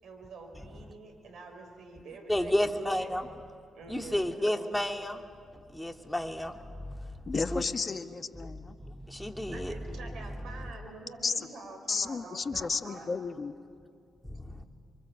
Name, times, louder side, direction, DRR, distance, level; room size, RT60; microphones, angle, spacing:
voice 1, 0.0-3.1 3.7-4.7 9.5-13.1, right 3 dB, 70° right, 5 dB, 4.3 m, -47 dB
voice 2, 2.3-3.3 3.9-5.2 5.7-6.5 7.3-7.6 9.1-9.7, left 1 dB, 10° left, 4 dB, 2.4 m, -30 dB
voice 3, 7.3-8.7 11.2-11.3 11.9-13.5, left 4 dB, 45° left, 10 dB, 1.4 m, -33 dB
28.5 x 24.0 x 7.6 m, 2.3 s
hypercardioid pair, 45°, 0 cm